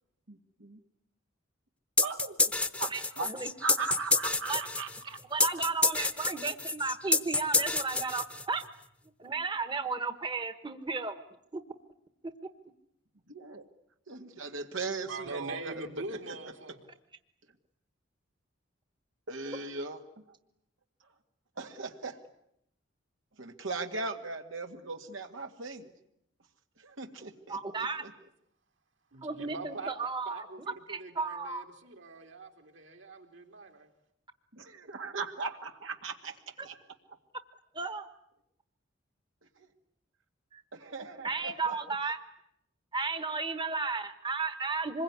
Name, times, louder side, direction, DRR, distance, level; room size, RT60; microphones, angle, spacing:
voice 1, 0.3-0.8 2.0-3.3 3.6-5.2 13.3-13.6 14.1-16.4 19.3-20.0 20.3-20.4 21.6-22.2 23.4-25.9 26.8-28.1 34.5-36.7 39.6-39.7 40.7-41.7, right 3 dB, 90° right, 2.2 m, -39 dB
sound 1, 2.0-8.7, left 3 dB, 5° left, 1.0 m, -28 dB
voice 2, 2.9-3.5 4.5-4.6 5.3-8.6 9.2-11.2 11.5-11.6 27.5-28.0 29.2-30.4 30.9-31.6 37.7-38.1 40.5-40.6 41.2-42.2 42.9-45.0, right 4 dB, 25° right, 1.2 m, -34 dB
voice 3, 15.0-16.8 29.1-30.0 30.2-33.9, right 3 dB, 70° right, 3.2 m, -43 dB
26.0 x 22.0 x 9.7 m
head